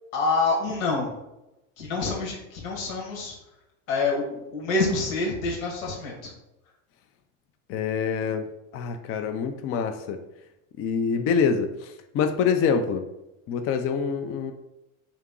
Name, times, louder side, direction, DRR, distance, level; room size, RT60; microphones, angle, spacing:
voice 1, 0.1-1.1 1.8-3.3 3.9-6.3, left 3 dB, 80° left, -1 dB, 1.3 m, -27 dB
voice 2, 7.7-8.5 8.7-10.2 10.8-13.0 13.5-14.5, left 6 dB, 35° left, 7 dB, 0.4 m, -25 dB
3.5 x 2.9 x 3.7 m, 0.93 s
supercardioid pair, 105°, 40 cm